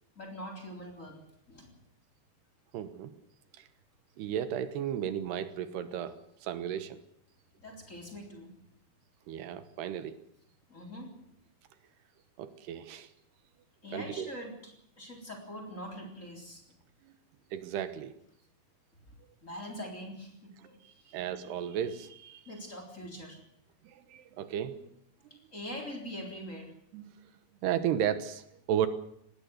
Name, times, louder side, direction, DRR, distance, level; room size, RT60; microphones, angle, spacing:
voice 1, 0.2-1.7 7.6-8.5 10.7-11.1 13.8-16.6 19.1-19.2 19.4-21.2 22.5-23.4 25.5-26.7, equal, 20° left, 3 dB, 3.7 m, -43 dB
voice 2, 2.7-3.1 3.6-3.7 4.2-7.0 9.3-10.2 12.4-13.1 13.9-14.3 17.0-17.1 17.5-18.1 20.8-22.4 23.8-24.9 26.9-27.1 27.6-28.9, right 10 dB, 80° right, 12 dB, 3.2 m, -34 dB
19.0 x 16.0 x 9.3 m, 0.71 s
omnidirectional pair, 4.7 m